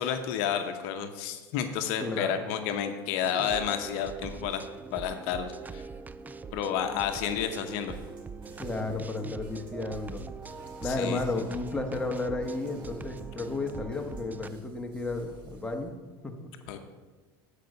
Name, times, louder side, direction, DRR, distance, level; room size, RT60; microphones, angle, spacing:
voice 1, 0.0-4.6 4.9-5.8 6.5-7.9 10.8-11.2 16.7-16.8, left 8 dB, 60° left, 7 dB, 0.8 m, -31 dB
voice 2, 2.0-2.5 8.6-10.2 10.8-15.9 16.2-16.5, left 2 dB, 10° left, 2 dB, 1.1 m, -33 dB
sound 1, 3.2-14.5, right 5 dB, 15° right, 0.3 m, -43 dB
sound 2, 7.5-15.9, right 3 dB, 40° right, 2.3 m, -53 dB
9.1 x 5.0 x 6.6 m, 1.3 s
hypercardioid pair, 100°, 12 cm